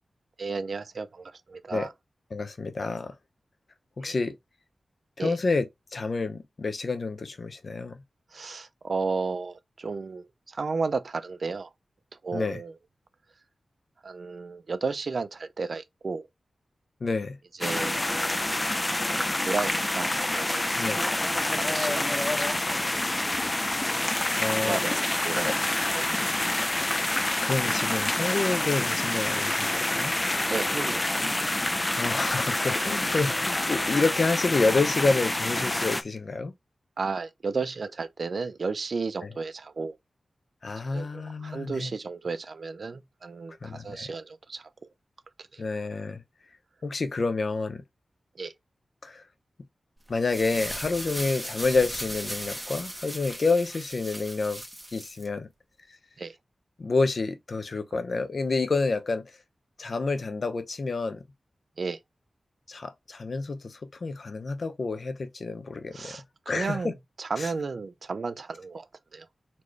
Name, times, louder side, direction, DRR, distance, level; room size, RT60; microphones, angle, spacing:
voice 1, 0.4-1.9 4.0-4.2 5.2-5.4 8.3-11.7 12.2-12.7 14.0-16.3 17.6-18.4 19.1-21.1 21.5-22.8 24.6-25.5 25.9-26.0 30.5-31.1 37.0-40.0 40.9-44.7 45.4-45.6 48.4-48.5 56.2-56.4 61.8-62.0 65.9-68.9 69.1-69.3, right 4 dB, 65° right, 0.5 m, -33 dB
voice 2, 2.3-3.1 4.0-4.3 5.2-5.6 5.9-8.0 12.3-12.6 17.0-17.4 20.8-21.0 24.4-24.8 25.4-25.6 27.2-30.1 32.0-36.5 40.6-41.9 43.6-44.1 45.6-46.2 46.8-47.8 49.0-49.2 50.1-54.6 54.9-55.5 56.8-59.2 59.8-61.2 62.7-66.2 66.5-66.9 67.4-67.5, left 3 dB, 60° left, 0.8 m, -28 dB
sound 1, 17.6-36.0, left 1 dB, 25° left, 0.5 m, -27 dB
sound 2, 50.1-55.3, equal, 5° right, 1.4 m, -37 dB
4.2 x 3.0 x 3.2 m
cardioid pair, 65°, 0 cm